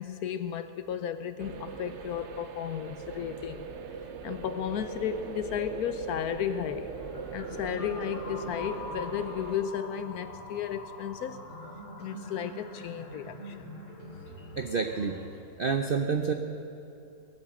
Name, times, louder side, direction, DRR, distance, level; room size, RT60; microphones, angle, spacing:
voice 1, 0.0-3.7 4.2-6.9 7.3-11.4 12.0-13.7, left 9 dB, 70° left, 11 dB, 1.1 m, -34 dB
sound 1, 1.4-9.6, right 6 dB, 55° right, 0.9 m, -41 dB
sound 2, 6.9-15.3, left 2 dB, 35° left, 3.0 m, -43 dB
voice 2, 14.6-15.2 15.6-16.3, right 5 dB, 70° right, 6 dB, 0.5 m, -28 dB
19.0 x 8.8 x 7.7 m, 2.7 s
omnidirectional pair, 1.8 m